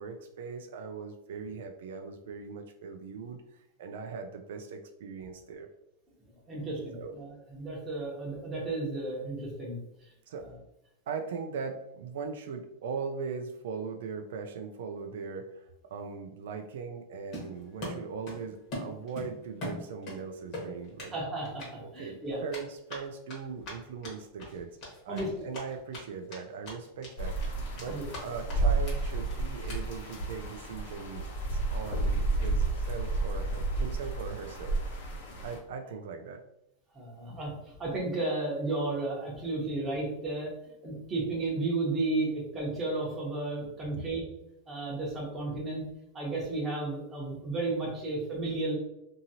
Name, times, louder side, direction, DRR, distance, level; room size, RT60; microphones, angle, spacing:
voice 1, 0.0-5.7 6.9-7.2 10.3-10.5 11.1-15.7 15.9-21.1 21.8-24.7 25.0-31.2 31.5-34.7 35.4-36.4 43.9-44.0, right 5 dB, 75° right, 5 dB, 0.3 m, -40 dB
voice 2, 6.5-9.8 21.1-22.4 25.1-25.3 27.9-28.0 36.9-40.5 40.8-44.2 44.7-45.8 46.1-48.7, right 2 dB, 15° right, -4 dB, 0.9 m, -33 dB
Run, 17.3-18.4 18.7-20.2 20.5-21.1 21.4-21.7 22.5-26.0 26.3-26.4 26.6-27.1 27.4-28.2 28.5-28.6 28.8-28.9 29.2-29.3 29.7-29.8 30.1-30.3, left 1 dB, 30° left, 1.1 m, -40 dB
sound 1, 27.2-35.6, right 2 dB, 60° left, 0.9 m, -31 dB
2.8 x 2.7 x 2.7 m, 0.85 s
supercardioid pair, 170°, 0 cm